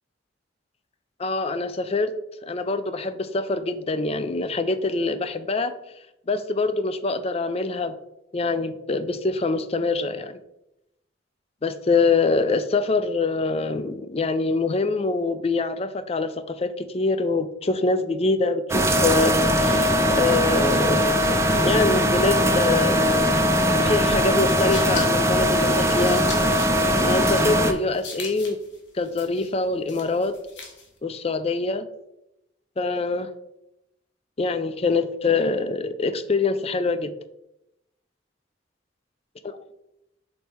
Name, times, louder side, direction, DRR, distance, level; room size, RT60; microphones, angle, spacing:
voice 1, 1.2-2.1 2.4-5.7 6.3-7.9 8.3-10.4 11.6-21.1 21.6-23.0 23.8-26.3 27.0-28.6 28.9-30.3 31.0-31.9 32.8-33.3 34.4-37.1, left 3 dB, 35° left, 11 dB, 0.5 m, -24 dB
sound 1, 18.7-27.7, equal, 15° right, 0.5 m, -20 dB
sound 2, 24.7-31.0, left 4 dB, 80° left, 1.4 m, -41 dB
5.3 x 4.2 x 4.5 m, 0.86 s
head